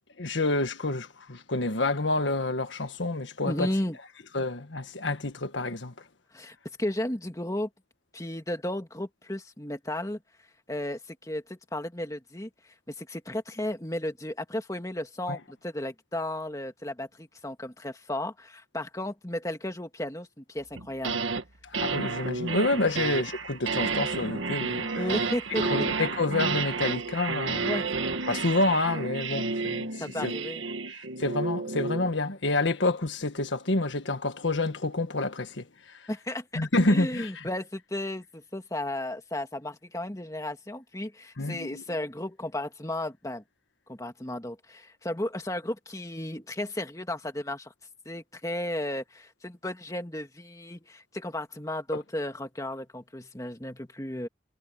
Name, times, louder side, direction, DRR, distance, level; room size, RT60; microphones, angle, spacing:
voice 1, 0.2-3.7 4.3-5.9 15.3-15.4 21.6-24.9 25.6-27.8 28.3-30.3 31.2-36.0 36.5-37.4 41.4-41.8, left 2 dB, 75° left, 1.6 m, -28 dB
voice 2, 3.4-4.0 6.3-7.7 8.1-10.2 10.7-12.5 12.9-21.2 25.0-25.6 27.6-27.8 30.0-30.6 36.1-43.4 43.9-47.7 48.1-54.3, left 1 dB, 15° left, 2.0 m, -34 dB
sound 1, 20.8-21.4 21.7-32.1, right 4 dB, 90° right, 1.7 m, -31 dB
head